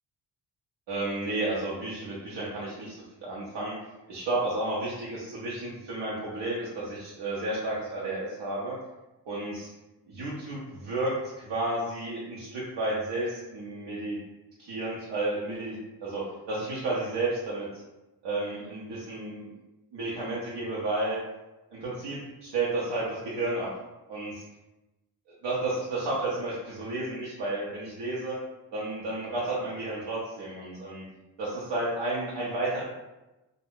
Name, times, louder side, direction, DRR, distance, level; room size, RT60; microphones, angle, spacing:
voice 1, 0.9-3.7 4.1-8.8 9.3-9.7 10.1-14.2 14.6-17.7 18.2-19.5 19.9-21.2 21.7-23.7 24.1-24.4 25.4-28.4 28.7-31.0 31.4-32.8, right 2 dB, 85° right, -6 dB, 0.7 m, -32 dB
2.5 x 2.1 x 3.4 m, 1.0 s
cardioid pair, 100°, 42 cm